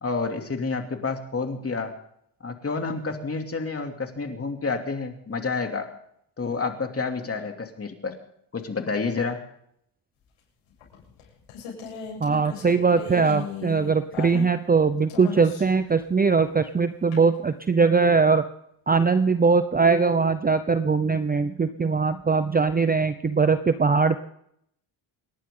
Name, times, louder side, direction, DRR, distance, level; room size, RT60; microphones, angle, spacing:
voice 1, 0.0-1.9 2.4-5.9 6.4-8.1 8.5-9.4, left 4 dB, 30° left, 4 dB, 2.8 m, -29 dB
sound 1, 10.8-14.8 15.1-15.8 17.1-17.2, left 6 dB, 85° left, 8.0 m, -37 dB
voice 2, 12.2-18.4 18.9-24.2, right 4 dB, 20° right, 11 dB, 0.7 m, -21 dB
28.5 x 11.5 x 3.8 m, 0.72 s
cardioid pair, 100°, 49 cm